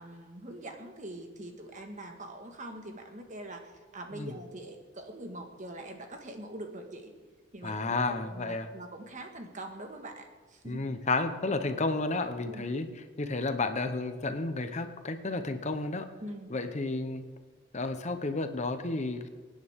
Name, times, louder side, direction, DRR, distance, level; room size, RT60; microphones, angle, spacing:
voice 1, 0.0-7.1 7.5-8.0 8.3-10.8 12.4-12.6 16.2-16.5, right 1 dB, 40° right, 4 dB, 1.6 m, -43 dB
voice 2, 7.6-8.7 10.6-12.9 13.2-16.1 16.5-17.3 17.7-19.3, left 3 dB, 35° left, 8 dB, 0.9 m, -31 dB
24.0 x 9.7 x 3.6 m, 1.4 s
head